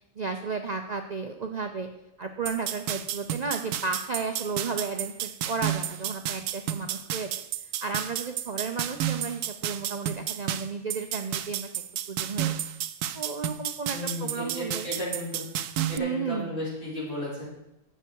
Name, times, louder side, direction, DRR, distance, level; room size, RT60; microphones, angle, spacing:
voice 1, 0.0-1.9 2.2-7.3 7.8-11.7 12.1-12.5 13.1-14.9 16.0-16.6, right 4 dB, 45° right, 6 dB, 0.5 m, -33 dB
sound 1, 2.5-16.0, right 11 dB, 85° right, 1.1 m, -32 dB
voice 2, 13.9-15.4 15.9-17.4, left 1 dB, 55° left, -6 dB, 4.6 m, -34 dB
12.0 x 7.9 x 4.6 m, 0.90 s
omnidirectional pair, 1.6 m